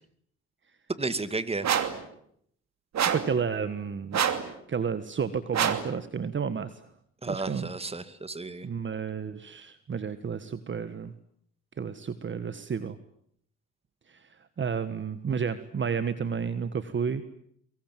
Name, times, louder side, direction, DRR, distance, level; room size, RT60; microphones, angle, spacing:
voice 1, 1.0-1.7 7.2-8.7, right 3 dB, 20° right, 12 dB, 2.3 m, -33 dB
sound 1, 1.6-2.0 2.9-3.3 4.1-4.5 5.5-5.9, right 8 dB, 60° right, 2.8 m, -26 dB
voice 2, 3.0-4.2 4.7-6.9 7.3-7.7 8.6-11.1 11.8-13.0 14.1-17.2, right 6 dB, 40° right, 12 dB, 1.6 m, -31 dB
24.0 x 23.0 x 9.2 m, 0.70 s
cardioid pair, 90°, 30 cm